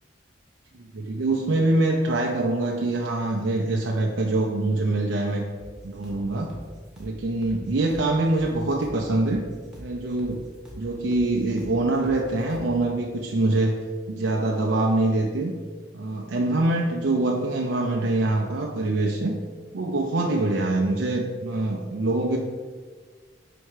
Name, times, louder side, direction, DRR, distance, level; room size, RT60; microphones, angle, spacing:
voice 1, 0.9-5.4 5.8-6.5 7.0-9.4 9.8-10.4 10.8-13.8 14.1-15.5 15.9-19.3 19.7-22.4, right 2 dB, 80° right, 0 dB, 0.5 m, -24 dB
sound 1, 5.6-12.8, right 1 dB, 5° right, 1.0 m, -44 dB
4.5 x 4.3 x 4.8 m, 1.5 s
head